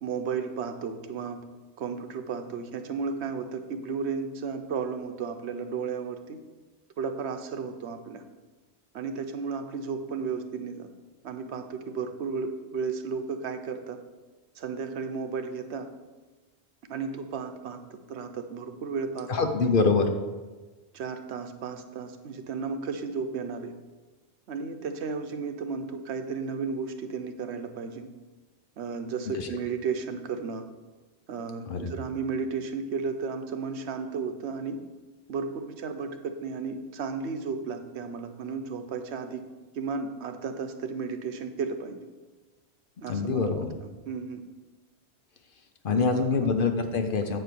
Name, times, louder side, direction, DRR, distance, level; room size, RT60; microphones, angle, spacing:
voice 1, 0.0-1.4 1.8-6.4 7.0-8.2 8.9-10.9 11.2-14.0 14.6-15.9 16.9-17.8 18.1-19.7 20.9-23.7 24.5-28.1 28.8-30.6 31.3-34.8 35.3-39.4 39.8-42.0 43.0-43.7 44.1-44.4 45.9-46.3, right 5 dB, 80° right, 7 dB, 1.0 m, -33 dB
voice 2, 19.3-20.1 29.3-29.5 31.7-31.8 43.1-43.7 45.8-47.4, left 4 dB, 55° left, 6 dB, 0.9 m, -25 dB
7.9 x 4.5 x 6.8 m, 1.2 s
omnidirectional pair, 1.1 m